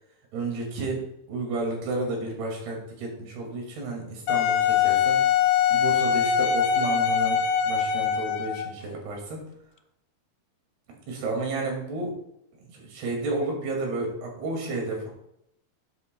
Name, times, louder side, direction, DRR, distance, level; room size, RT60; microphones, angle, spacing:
voice 1, 0.3-5.2 5.7-7.4 7.6-9.4 11.1-12.1 12.6-15.1, right 2 dB, 80° right, 0 dB, 4.4 m, -31 dB
Wind instrument woodwind instrument, 4.3-8.8, left 8 dB, 85° left, 2.6 m, -23 dB
12.0 x 9.5 x 2.3 m, 0.78 s
omnidirectional pair, 4.5 m